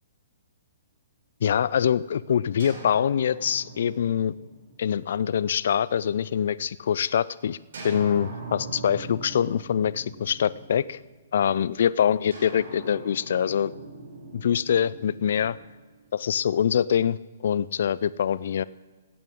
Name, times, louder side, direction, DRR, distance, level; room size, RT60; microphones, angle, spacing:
voice 1, 1.4-4.3 4.8-7.6 7.8-11.0 11.3-13.7 14.3-15.6 16.1-18.6, left 8 dB, 60° left, 20 dB, 0.3 m, -24 dB
sound 1, 2.6-6.4 7.7-11.3 12.3-16.4, right 3 dB, 65° right, 4.2 m, -42 dB
17.0 x 8.6 x 3.7 m, 1.3 s
figure-of-eight pair, 125°, 0 cm